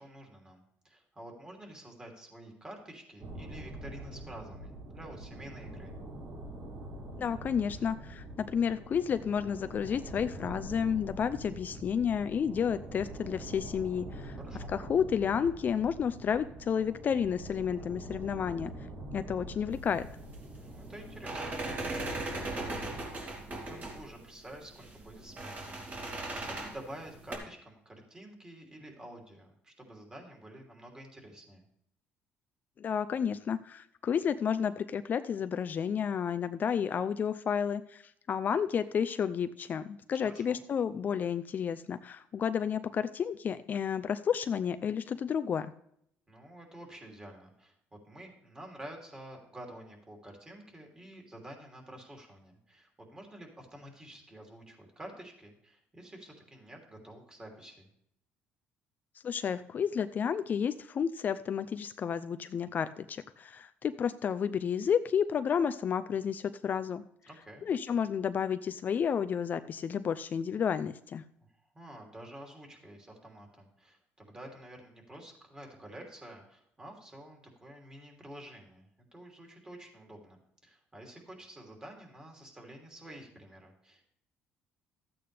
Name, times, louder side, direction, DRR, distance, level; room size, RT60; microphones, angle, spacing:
voice 1, 0.0-5.9 14.4-14.7 20.6-31.6 40.2-40.6 46.3-47.7 48.0-57.9 67.3-67.6 71.7-84.0, right 1 dB, 20° right, 1 dB, 3.0 m, -49 dB
sound 1, 3.2-23.0, right 1 dB, 65° right, 4.5 m, -44 dB
voice 2, 7.2-14.4 14.7-18.7 19.1-20.1 32.8-38.0 38.3-45.7 59.2-67.0 67.6-71.2, left 7 dB, 45° left, 11 dB, 0.5 m, -31 dB
sound 2, 19.7-27.4, right 2 dB, 35° right, 2.8 m, -39 dB
13.0 x 8.7 x 3.4 m, 0.71 s
cardioid pair, 100°, 4 cm